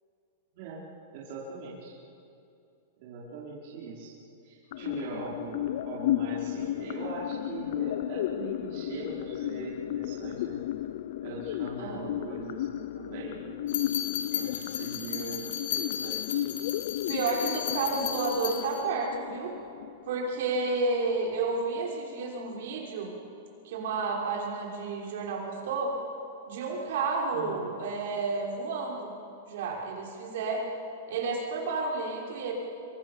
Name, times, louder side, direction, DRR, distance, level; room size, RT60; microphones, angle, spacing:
voice 1, 1.1-1.9 3.0-4.1 4.4-10.6 11.2-13.6 14.3-16.5 27.3-27.7, right 4 dB, 45° right, -6 dB, 4.9 m, -41 dB
sound 1, 4.7-20.7, left 13 dB, 55° left, 0.6 m, -34 dB
sound 2, 13.7-18.8, left 9 dB, 70° left, 3.4 m, -35 dB
voice 2, 17.1-19.5 20.1-23.1 23.6-25.9 26.5-29.1 29.5-30.6 31.1-32.5, right 4 dB, 65° right, -1 dB, 5.9 m, -31 dB
27.0 x 24.0 x 7.2 m, 2.6 s
supercardioid pair, 165°, 0 cm